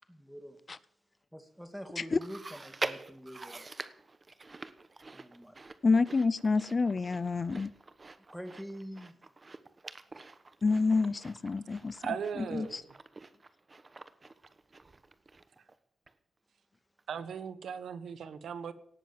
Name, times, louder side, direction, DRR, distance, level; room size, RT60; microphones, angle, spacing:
voice 1, 0.1-0.6 1.3-3.7 5.1-5.6 8.3-9.2, equal, ahead, 2.5 m, -45 dB
Chewing mastication, 2.2-15.7 16.1-16.2 17.0-17.1, right 3 dB, 35° right, 1.2 m, -45 dB
voice 2, 5.8-7.7 10.6-12.0 12.5-12.8, left 4 dB, 45° left, 0.5 m, -28 dB
voice 3, 12.0-12.8 17.1-18.7, right 7 dB, 85° right, 1.0 m, -38 dB
18.0 x 7.5 x 7.5 m
cardioid pair, 70°, 0 cm